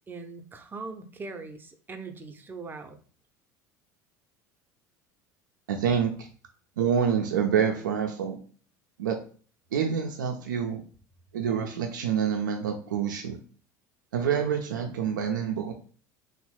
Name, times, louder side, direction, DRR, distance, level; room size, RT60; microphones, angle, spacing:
voice 1, 0.1-3.0, right 4 dB, 20° right, 6 dB, 0.5 m, -41 dB
voice 2, 5.7-6.3 6.8-8.4 9.0-9.2 9.7-10.8 11.3-13.4 14.1-15.7, right 7 dB, 90° right, 3 dB, 0.4 m, -27 dB
3.0 x 2.1 x 3.0 m, 0.41 s
hypercardioid pair, 75°, 10 cm